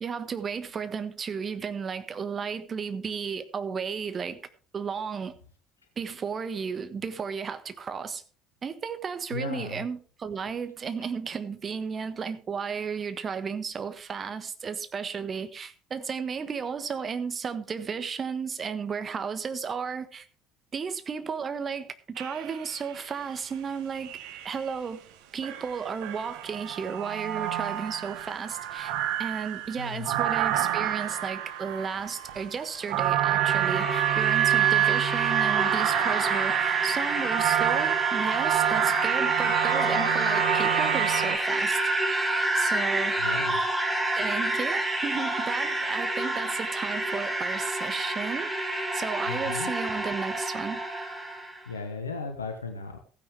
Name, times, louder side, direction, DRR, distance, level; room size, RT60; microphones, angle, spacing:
voice 1, 0.0-4.4 4.7-5.3 6.0-8.2 8.6-20.3 20.7-24.1 24.4-25.0 25.3-28.9 29.2-41.8 42.5-43.2 44.1-48.5 48.9-50.8, right 6 dB, 35° right, 1.4 m, -33 dB
voice 2, 9.3-9.8 29.8-30.3 43.2-43.6 49.3-49.7 51.7-53.0, left 4 dB, 80° left, 1.1 m, -36 dB
sound 1, 22.2-23.0 24.0-24.7 25.4-41.4, right 11 dB, 60° right, 1.2 m, -27 dB
sound 2, 33.0-51.6, right 1 dB, 15° right, 2.7 m, -29 dB
15.0 x 9.8 x 3.4 m
figure-of-eight pair, 60°, 0 cm